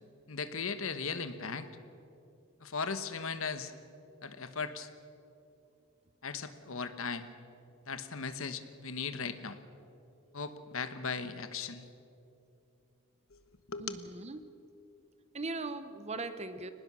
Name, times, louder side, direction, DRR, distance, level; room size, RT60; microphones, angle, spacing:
voice 1, 0.3-1.7 2.6-3.7 4.2-4.9 6.2-7.3 7.9-9.6 10.3-11.8 13.3-13.4 13.7-14.0, left 5 dB, 65° left, 10 dB, 1.2 m, -37 dB
voice 2, 13.8-14.4 15.3-16.7, right 3 dB, 30° right, 11 dB, 0.9 m, -39 dB
24.0 x 19.5 x 6.2 m, 2.8 s
head